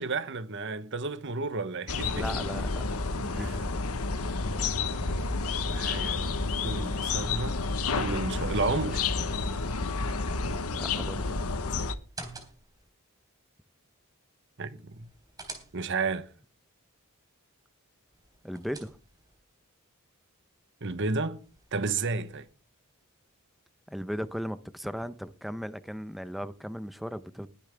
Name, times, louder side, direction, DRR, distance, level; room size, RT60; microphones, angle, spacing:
voice 1, 0.0-2.3 3.4-3.6 4.1-4.3 5.0-5.4 5.7-6.2 6.6-7.6 7.9-9.1 14.6-15.1 15.7-16.3 20.8-21.4 21.7-22.5, right 3 dB, 55° right, 1.0 m, -32 dB
sound 1, 1.9-11.9, left 3 dB, 85° left, 1.1 m, -30 dB
voice 2, 2.1-2.8 3.1-3.6 10.7-11.5 18.4-19.0 23.9-27.5, equal, ahead, 0.7 m, -37 dB
sound 2, 12.0-12.9 14.9-16.2 18.1-19.4 21.4-22.5, right 3 dB, 15° right, 3.4 m, -47 dB
21.0 x 8.7 x 3.4 m
head